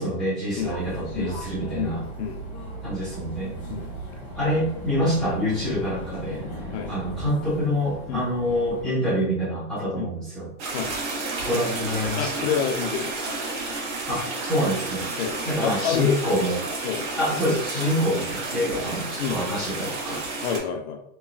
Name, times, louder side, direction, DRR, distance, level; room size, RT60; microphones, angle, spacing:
voice 1, 0.0-2.0 2.8-3.6 4.3-6.4 6.9-10.5 11.4-12.5 14.1-15.1 15.5-16.6 17.2-20.2, equal, ahead, -14 dB, 0.3 m, -26 dB
sound 1, 0.6-8.8, right 1 dB, 20° left, 0.8 m, -37 dB
voice 2, 1.7-2.4 3.7-3.9 6.7-6.9 8.1-8.2 10.0-10.1 10.7-10.9 12.1-13.3 15.2-16.4 16.8-17.1 19.2-19.4 20.4-21.0, left 7 dB, 55° left, 6 dB, 0.5 m, -29 dB
sound 2, 10.6-20.6, right 3 dB, 55° right, 1.5 m, -31 dB
3.0 x 2.3 x 2.4 m, 0.69 s
supercardioid pair, 170°, 40 cm